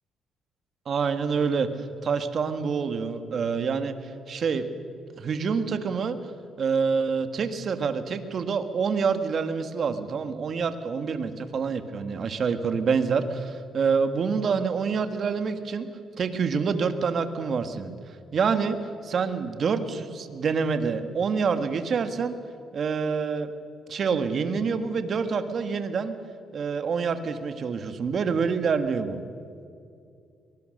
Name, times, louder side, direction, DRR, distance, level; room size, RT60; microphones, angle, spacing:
voice 1, 0.8-4.7 5.2-6.2 6.6-15.9 16.1-18.8 19.0-22.4 22.7-23.5 23.9-26.2 26.5-29.2, right 5 dB, 55° right, 9 dB, 1.6 m, -27 dB
23.0 x 20.0 x 6.6 m, 2.4 s
cardioid pair, 90°, 0 cm